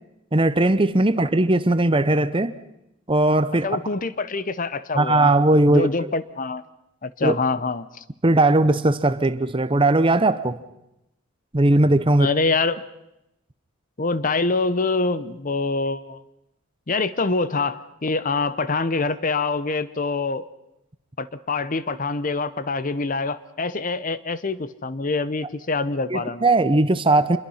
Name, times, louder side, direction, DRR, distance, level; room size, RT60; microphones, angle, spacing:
voice 1, 0.3-2.5 3.1-3.7 4.9-5.9 7.2-7.3 8.2-10.6 11.5-12.3 26.1-27.4, right 2 dB, 25° right, 13 dB, 0.8 m, -18 dB
voice 2, 3.6-5.3 5.7-6.6 7.0-8.0 12.2-12.8 14.0-16.2 16.9-20.4 21.2-26.4, left 3 dB, 40° left, 15 dB, 0.8 m, -25 dB
26.5 x 22.0 x 5.7 m, 0.86 s
head